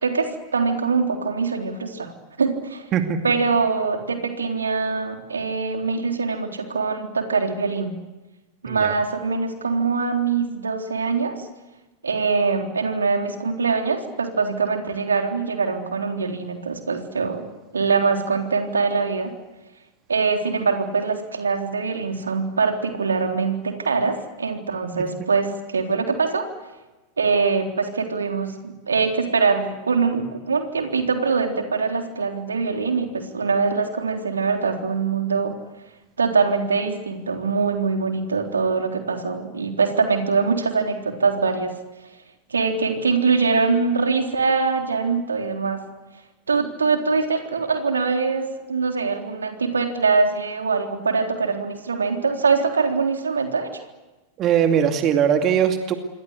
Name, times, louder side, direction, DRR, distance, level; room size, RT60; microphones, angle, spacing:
voice 1, 0.0-2.1 2.4-2.9 3.2-7.9 8.6-11.5 12.0-17.5 17.7-19.3 20.1-26.5 27.2-35.5 36.2-41.7 42.5-45.8 46.5-53.8, right 4 dB, 75° right, 4 dB, 3.7 m, -23 dB
voice 2, 54.4-55.9, right 8 dB, 35° right, 6 dB, 2.5 m, -20 dB
28.0 x 23.5 x 8.3 m, 1.1 s
figure-of-eight pair, 90°, 0 cm